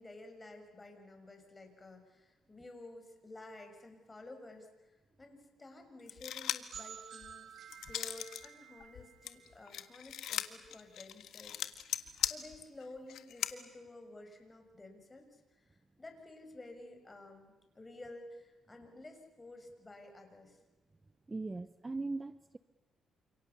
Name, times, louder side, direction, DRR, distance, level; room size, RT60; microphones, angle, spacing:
voice 1, 0.0-4.9 5.2-7.5 7.8-20.6, left 2 dB, 20° left, 5 dB, 6.9 m, -52 dB
sound 1, 6.1-6.8 7.2-8.5 8.8-13.5, left 11 dB, 75° left, 1.6 m, -38 dB
sound 2, 6.7-10.4, right 8 dB, 60° right, 1.7 m, -52 dB
voice 2, 21.3-22.6, right 3 dB, 20° right, 13 dB, 0.9 m, -39 dB
29.5 x 27.5 x 7.2 m, 1.2 s
cardioid pair, 90°, 0 cm